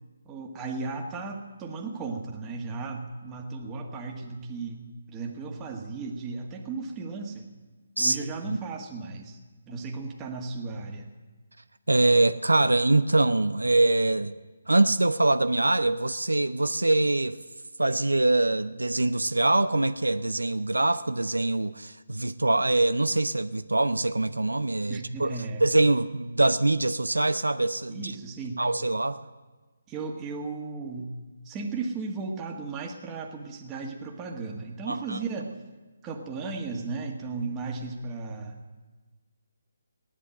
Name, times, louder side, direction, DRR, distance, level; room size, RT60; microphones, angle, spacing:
voice 1, 0.3-7.5 8.0-9.4 9.7-11.1 24.9-25.6 27.9-28.6 29.9-31.1 31.5-35.6 36.0-38.6, right 4 dB, 15° right, 1.8 m, -35 dB
voice 2, 11.9-14.4 14.7-17.4 17.8-28.1 28.6-29.2 34.9-35.2, right 2 dB, 90° right, 0.5 m, -24 dB
16.5 x 11.0 x 7.7 m
figure-of-eight pair, 150°, 0 cm